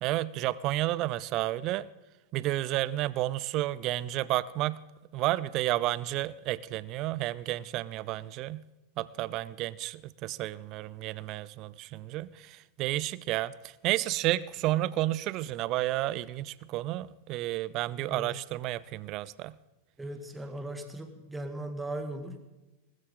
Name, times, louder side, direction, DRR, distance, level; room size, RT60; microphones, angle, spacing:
voice 1, 0.0-1.9 2.3-4.8 5.1-8.6 9.0-19.5, right 16 dB, 40° right, 20 dB, 0.5 m, -31 dB
voice 2, 20.0-22.5, right 1 dB, 10° right, 7 dB, 1.8 m, -38 dB
19.5 x 14.0 x 3.7 m, 1.1 s
figure-of-eight pair, 90°, 0 cm